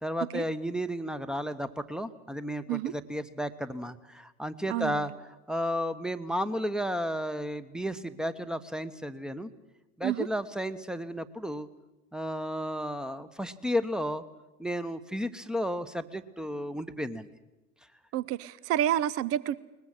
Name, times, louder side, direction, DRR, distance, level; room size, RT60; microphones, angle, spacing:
voice 1, 0.0-5.1 5.5-9.5 10.0-11.7 12.1-14.2 14.6-17.3, equal, ahead, 1.1 m, -33 dB
voice 2, 4.7-5.0 10.0-10.3 18.1-19.5, right 12 dB, 35° right, 0.7 m, -29 dB
21.5 x 20.5 x 7.8 m
figure-of-eight pair, 70°, 40 cm